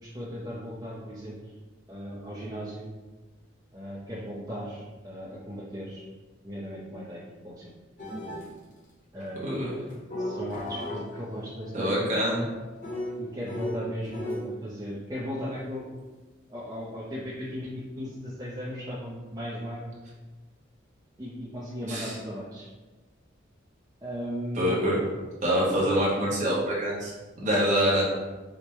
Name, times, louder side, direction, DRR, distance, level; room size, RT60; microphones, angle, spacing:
voice 1, 0.0-1.5 1.9-2.9 3.7-6.0 6.4-7.7 9.1-9.6 10.2-12.2 13.2-15.9 16.5-19.9 21.2-22.7 24.0-24.6 25.6-26.1, equal, 20° right, -8 dB, 0.5 m, -37 dB
sound 1, 8.0-8.5 9.9-14.5, left 1 dB, 40° left, 0.8 m, -36 dB
voice 2, 9.4-9.7 11.7-12.4 21.9-22.1 24.5-24.9 25.4-28.0, equal, 40° right, -5 dB, 1.0 m, -25 dB
5.0 x 2.1 x 2.9 m, 1.2 s
head